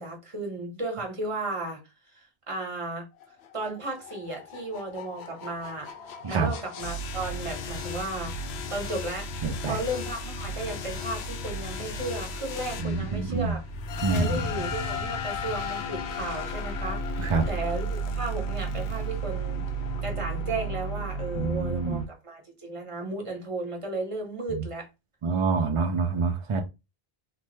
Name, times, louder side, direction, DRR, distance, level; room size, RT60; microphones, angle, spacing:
voice 1, 0.0-1.8 2.1-3.1 3.5-9.3 9.7-13.6 14.1-19.6 20.0-24.9, right 2 dB, 35° right, 0.9 m, -34 dB
sound 1, 3.2-22.1, equal, 90° left, 0.8 m, -34 dB
voice 2, 9.4-9.8 12.8-13.6 14.0-14.4 17.2-17.5 21.4-22.0 25.2-26.6, right 4 dB, 60° right, 0.3 m, -26 dB
3.2 x 2.1 x 3.1 m
omnidirectional pair, 1.0 m